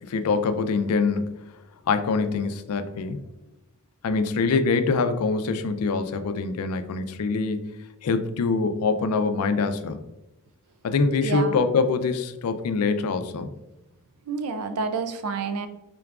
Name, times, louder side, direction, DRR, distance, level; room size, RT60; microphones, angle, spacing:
voice 1, 0.1-1.5 1.9-3.2 4.0-7.7 8.0-10.0 10.8-13.5, left 4 dB, 80° left, 10 dB, 0.4 m, -24 dB
voice 2, 11.2-11.6 14.3-15.7, right 5 dB, 90° right, 8 dB, 0.4 m, -28 dB
3.8 x 3.4 x 2.4 m, 0.96 s
head